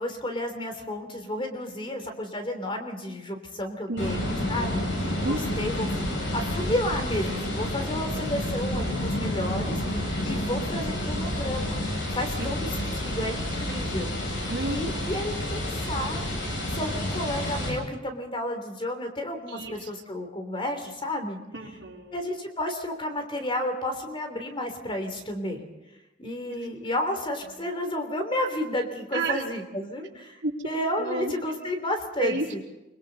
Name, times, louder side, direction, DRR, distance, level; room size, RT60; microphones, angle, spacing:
voice 1, 0.0-5.9 6.3-12.7 13.0-16.2 16.7-21.4 22.1-25.7 26.2-32.6, left 1 dB, 30° left, 5 dB, 3.3 m, -32 dB
voice 2, 3.9-4.2 4.5-5.4 5.7-6.0 12.4-13.2 14.5-14.8 19.5-19.9 21.5-22.1 26.5-26.6 27.4-27.5 29.1-29.4 30.4-30.5 31.0-31.3 32.2-32.6, right 2 dB, 75° right, -2 dB, 4.3 m, -32 dB
sound 1, 4.0-17.7, left 1 dB, 80° left, 7.8 m, -29 dB
29.0 x 22.5 x 4.2 m, 0.99 s
head